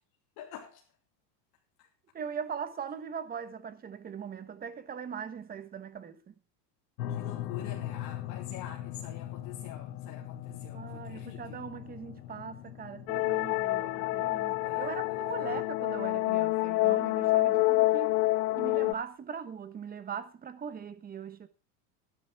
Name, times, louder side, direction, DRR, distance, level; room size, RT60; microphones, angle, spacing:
voice 1, 0.4-0.8 7.1-11.6 14.6-15.0 15.4-15.5, left 10 dB, 50° left, 3.0 m, -46 dB
voice 2, 2.1-6.3 10.7-18.2 18.6-21.5, right 7 dB, 20° right, 1.1 m, -40 dB
sound 1, 7.0-16.2, left 12 dB, 80° left, 1.7 m, -41 dB
sound 2, 13.1-18.9, left 19 dB, 65° left, 0.6 m, -27 dB
12.0 x 11.0 x 4.7 m
supercardioid pair, 135°, 50 cm